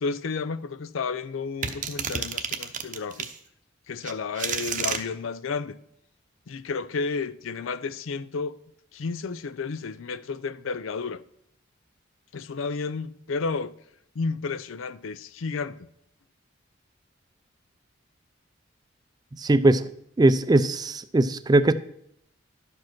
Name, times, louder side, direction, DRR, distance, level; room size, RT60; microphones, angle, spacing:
voice 1, 0.0-3.3 3.9-5.8 6.5-8.6 8.9-11.2 12.3-13.7 14.2-15.9, left 4 dB, 80° left, 0.5 m, -32 dB
sound 1, 1.6-3.4 4.0-5.0, right 7 dB, 40° right, 0.7 m, -30 dB
voice 2, 19.3-19.8 20.2-21.7, right 2 dB, 20° right, 0.4 m, -20 dB
12.0 x 5.1 x 6.0 m
head